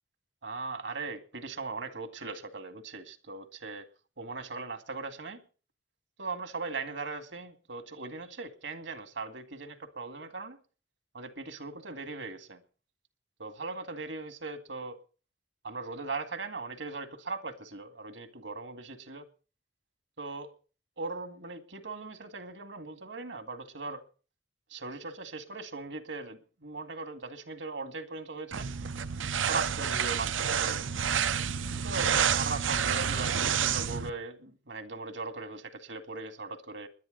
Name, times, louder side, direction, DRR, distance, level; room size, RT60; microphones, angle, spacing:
voice 1, 0.4-3.9 4.2-5.4 6.2-10.6 11.1-12.6 13.4-15.0 15.6-19.2 20.2-20.5 21.0-24.0 24.7-28.7 29.4-30.9 31.8-36.9, right 3 dB, 70° right, 2.0 m, -39 dB
sound 1, 28.5-34.1, right 7 dB, 85° right, 0.7 m, -29 dB
20.5 x 11.0 x 3.9 m
head